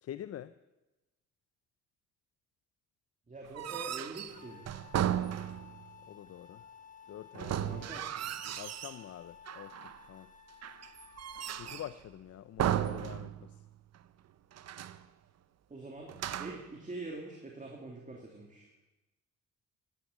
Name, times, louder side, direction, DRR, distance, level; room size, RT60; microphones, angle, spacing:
voice 1, 0.0-0.5 6.1-6.6 7.1-7.8 8.6-10.3 11.5-13.6, left 11 dB, 55° left, 14 dB, 0.6 m, -46 dB
voice 2, 3.3-4.7 7.7-8.0 15.7-16.1 16.4-18.7, right 2 dB, 25° right, 0 dB, 2.9 m, -44 dB
sound 1, 3.4-5.9 7.3-9.0 9.5-10.1 10.6-12.0 12.6-13.7 13.9-14.0 14.5-15.0 16.1-16.7, right 11 dB, 55° right, 0.8 m, -35 dB
sound 2, 4.3-11.9, left 7 dB, 25° left, 1.4 m, -55 dB
14.5 x 11.5 x 8.0 m, 1.1 s
cardioid pair, 90°, 30 cm